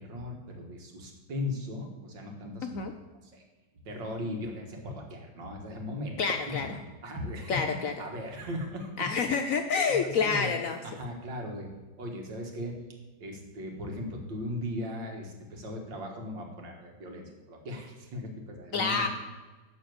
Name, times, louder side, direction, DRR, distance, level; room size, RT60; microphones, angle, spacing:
voice 1, 0.0-2.9 3.2-3.4 3.8-6.2 6.5-6.7 7.0-9.1 9.9-12.8 13.2-19.1, left 1 dB, 80° right, 1 dB, 2.4 m, -38 dB
voice 2, 2.6-2.9 6.2-6.7 7.5-7.9 9.0-10.8 18.7-19.1, left 5 dB, 65° left, 5 dB, 0.8 m, -28 dB
11.5 x 4.4 x 7.9 m, 1.3 s
omnidirectional pair, 2.0 m